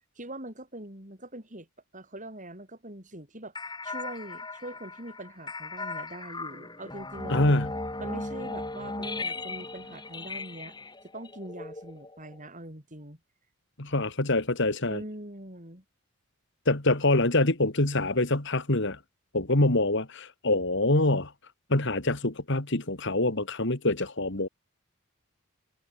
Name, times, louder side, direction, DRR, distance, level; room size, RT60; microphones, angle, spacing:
voice 1, 0.2-1.7 1.9-3.5 3.8-7.5 8.0-13.2 14.9-15.8, right 1 dB, 35° right, 7.1 m, -43 dB
sound 1, 3.5-12.5, left 2 dB, 20° left, 4.7 m, -37 dB
voice 2, 7.3-7.7 13.8-15.0 16.7-19.0 19.3-21.3 21.7-24.5, left 2 dB, 55° left, 2.5 m, -25 dB
head